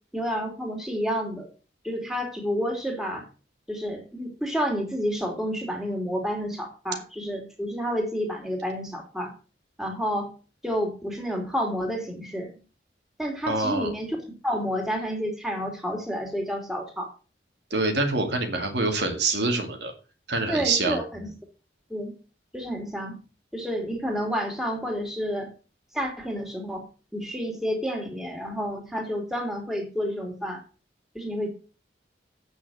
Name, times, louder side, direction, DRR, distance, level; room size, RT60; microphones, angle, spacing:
voice 1, 0.1-1.5 1.8-3.3 3.7-9.3 9.8-10.3 10.6-12.6 13.2-14.2 14.4-17.1 20.5-21.3 21.9-22.1 22.5-23.2 23.5-25.5 25.9-26.8 27.1-30.6 31.1-31.5, equal, ahead, 1 dB, 3.0 m, -30 dB
voice 2, 13.5-13.9 17.7-19.9 20.3-21.0, right 3 dB, 70° right, 4 dB, 2.3 m, -25 dB
8.7 x 6.4 x 7.7 m, 0.35 s
head